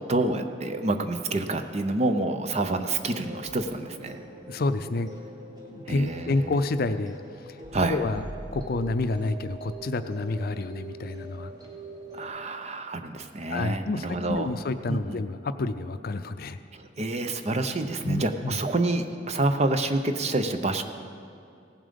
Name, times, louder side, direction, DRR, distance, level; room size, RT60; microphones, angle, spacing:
voice 1, 0.0-4.2 5.9-6.3 7.7-8.0 12.1-14.5 14.9-15.2 16.7-20.8, right 2 dB, 40° right, 8 dB, 0.7 m, -28 dB
sound 1, 3.1-12.3, right 2 dB, 25° right, 1.7 m, -43 dB
voice 2, 4.5-5.1 5.7-7.6 7.9-8.2 8.5-11.5 13.5-16.6 18.0-18.6, left 2 dB, 55° left, 11 dB, 0.5 m, -29 dB
17.0 x 7.5 x 5.2 m, 2.6 s
head